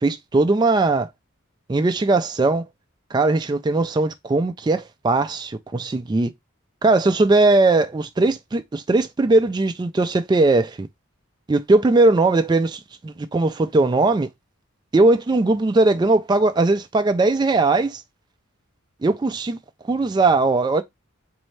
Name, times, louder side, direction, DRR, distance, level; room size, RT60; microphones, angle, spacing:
voice 1, 0.0-1.1 1.7-2.6 3.1-6.3 6.8-10.9 11.5-14.3 14.9-18.0 19.0-19.6 19.9-20.8, right 2 dB, 20° right, 0.3 m, -19 dB
4.1 x 2.7 x 3.2 m
head